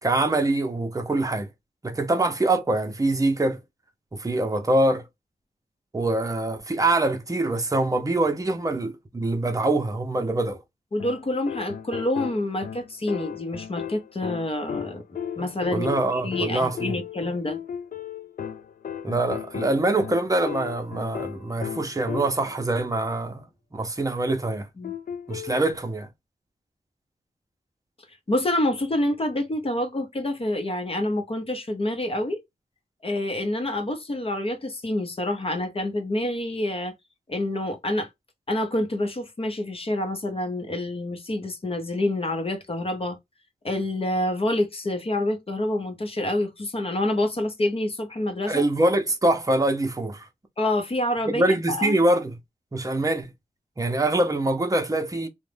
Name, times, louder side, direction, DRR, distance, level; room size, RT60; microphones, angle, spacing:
voice 1, 0.0-1.5 1.8-3.6 4.1-5.0 5.9-10.6 15.7-17.0 19.0-23.5 23.7-24.7 25.3-26.1 48.5-50.3 51.3-52.4 52.7-53.3 53.8-55.3, right 2 dB, 20° right, 0.7 m, -24 dB
voice 2, 10.9-15.0 15.4-15.9 16.1-17.6 24.8-24.9 28.3-32.4 33.0-36.9 37.3-38.1 38.5-43.2 43.6-48.6 50.6-51.4 51.7-52.0, left 1 dB, 40° left, 0.7 m, -27 dB
sound 1, 11.0-22.6 24.8-25.7, left 8 dB, 70° left, 0.4 m, -35 dB
2.4 x 2.1 x 3.3 m
wide cardioid pair, 70°, 15 cm